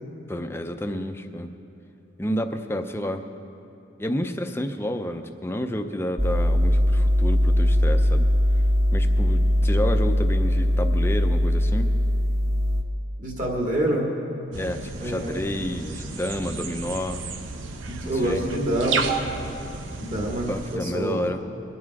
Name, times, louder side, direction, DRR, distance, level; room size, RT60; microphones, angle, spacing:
voice 1, 0.3-1.5 2.2-3.3 4.0-8.3 8.9-11.9 14.5-17.2 18.0-18.4 20.5-21.4, left 1 dB, 15° left, 6 dB, 0.6 m, -30 dB
sound 1, 6.2-12.8, equal, 15° right, 0.9 m, -20 dB
voice 2, 13.2-14.1 15.0-15.5 17.8-19.1 20.0-21.3, right 1 dB, 40° right, -1 dB, 2.2 m, -26 dB
sound 2, 14.5-20.8, right 4 dB, 85° right, 0.8 m, -32 dB
21.5 x 9.7 x 4.8 m, 2.9 s
head